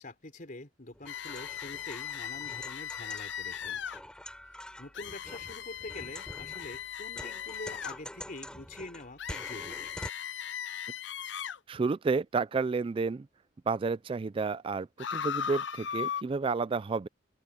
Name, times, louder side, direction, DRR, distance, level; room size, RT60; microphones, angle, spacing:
voice 1, 0.0-3.8 4.8-9.9, left 2 dB, 45° left, 4.1 m, -45 dB
sound 1, 0.9-10.1, left 1 dB, 5° left, 4.3 m, -47 dB
sound 2, 1.1-4.0 4.9-8.0 9.2-11.6 15.0-16.2, left 8 dB, 70° left, 0.6 m, -38 dB
voice 2, 11.7-13.3 13.7-17.1, right 4 dB, 30° right, 0.3 m, -31 dB
open air
head